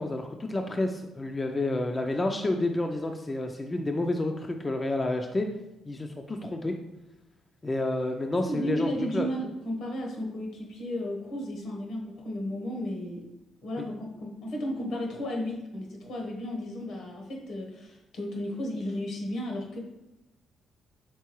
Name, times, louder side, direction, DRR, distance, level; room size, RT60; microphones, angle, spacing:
voice 1, 0.0-5.5 5.9-6.7 7.6-9.3 13.8-13.9, left 2 dB, 25° left, 4 dB, 0.4 m, -29 dB
voice 2, 8.3-13.3 13.6-19.8, equal, 70° left, 1 dB, 1.1 m, -34 dB
4.6 x 3.7 x 3.0 m, 0.98 s
cardioid pair, 90°, 0 cm